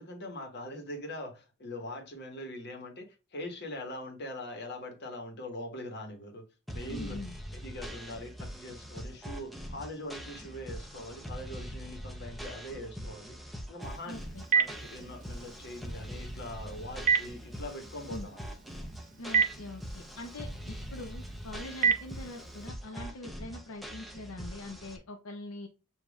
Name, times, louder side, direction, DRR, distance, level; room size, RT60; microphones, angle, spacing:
voice 1, 0.0-6.5 6.7-7.2 7.5-14.2 14.5-18.4, left 1 dB, 55° left, 1.4 m, -42 dB
sound 1, 6.7-25.0, equal, ahead, 0.7 m, -43 dB
voice 2, 6.9-7.4 14.1-14.4 18.1-18.3 19.2-25.7, left 2 dB, 80° left, 0.7 m, -43 dB
Telephone, 13.8-22.7, right 6 dB, 40° right, 0.6 m, -33 dB
7.0 x 2.8 x 2.3 m
head